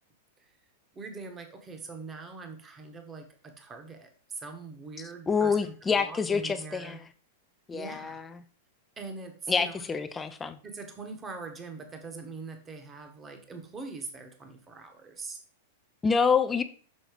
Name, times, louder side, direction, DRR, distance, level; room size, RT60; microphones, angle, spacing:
voice 1, 0.9-7.0 7.7-8.2 9.0-9.8 10.6-15.4, right 4 dB, 15° right, 0.9 m, -42 dB
voice 2, 5.3-7.0 7.7-8.2 9.5-10.6 16.0-16.6, left 5 dB, 10° left, 0.4 m, -27 dB
6.4 x 3.8 x 4.9 m
supercardioid pair, 160°, 0 cm